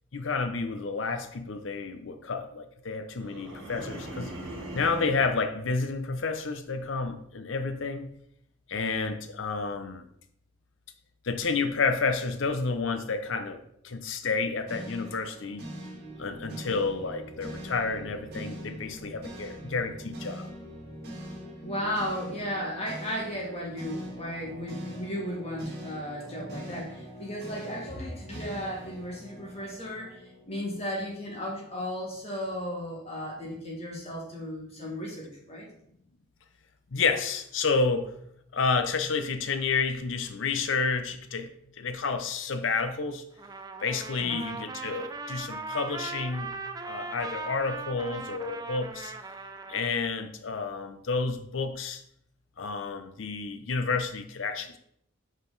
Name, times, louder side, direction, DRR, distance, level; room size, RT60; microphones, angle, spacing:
voice 1, 0.1-4.3 4.7-8.1 8.7-10.0 11.2-15.6 16.2-20.5 36.9-38.1 38.5-41.5 41.8-43.2 43.8-46.6 46.9-49.1 49.7-52.0 52.6-54.8, left 4 dB, 70° left, 9 dB, 0.6 m, -30 dB
sound 1, 3.2-5.3, right 1 dB, 70° right, 1.6 m, -40 dB
sound 2, 14.7-31.0, equal, 50° right, 1.9 m, -42 dB
voice 2, 21.6-35.7 44.2-44.4, equal, 30° left, -3 dB, 1.9 m, -35 dB
Trumpet, 43.4-49.9, right 4 dB, 20° right, 0.4 m, -39 dB
5.8 x 5.1 x 3.9 m, 0.72 s
head